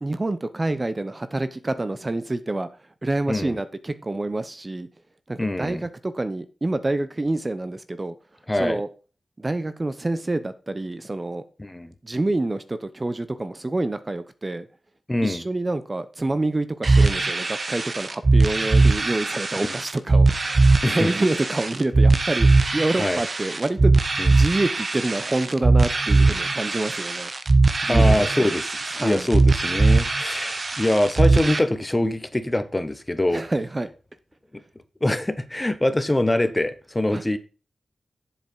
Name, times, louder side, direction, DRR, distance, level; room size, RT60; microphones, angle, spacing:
voice 1, 0.0-2.7 3.0-4.9 5.3-8.1 8.6-8.9 9.4-11.4 12.0-14.7 15.2-24.0 24.3-27.3 27.8-28.5 29.0-29.3 33.3-33.9 37.1-37.2, right 2 dB, 35° right, 0.9 m, -27 dB
voice 2, 5.4-5.8 8.5-8.8 11.6-11.9 15.1-15.4 19.6-19.7 20.8-21.1 23.0-23.2 24.2-24.3 27.9-33.5 35.0-37.4, left 1 dB, 20° left, 1.1 m, -24 dB
sound 1, 16.8-31.6, right 3 dB, 50° right, 1.1 m, -20 dB
7.7 x 7.1 x 5.5 m
cardioid pair, 50°, 0 cm